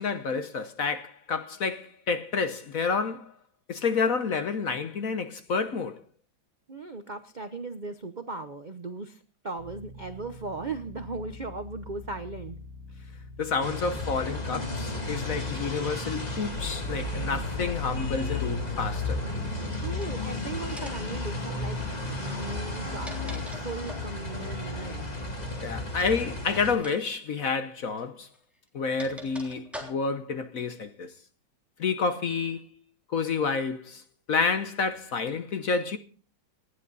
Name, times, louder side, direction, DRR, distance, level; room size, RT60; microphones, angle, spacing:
voice 1, 0.0-3.3 3.7-6.0 13.4-19.2 25.6-28.3 28.7-31.1 31.8-32.7 33.1-34.0 34.3-36.0, left 5 dB, 55° left, 1.1 m, -29 dB
voice 2, 6.7-12.6 19.8-21.8 22.2-25.1, right 3 dB, 45° right, 0.5 m, -37 dB
sound 1, 9.6-26.3, left 2 dB, 25° right, 3.7 m, -46 dB
sound 2, 13.6-26.8, left 2 dB, 20° left, 2.1 m, -33 dB
sound 3, 20.0-20.3 20.7-21.1 22.6-24.1 25.9-26.2 26.7-27.0 27.2-27.4 28.3-30.3, equal, ahead, 3.3 m, -44 dB
19.0 x 12.0 x 4.0 m
omnidirectional pair, 2.2 m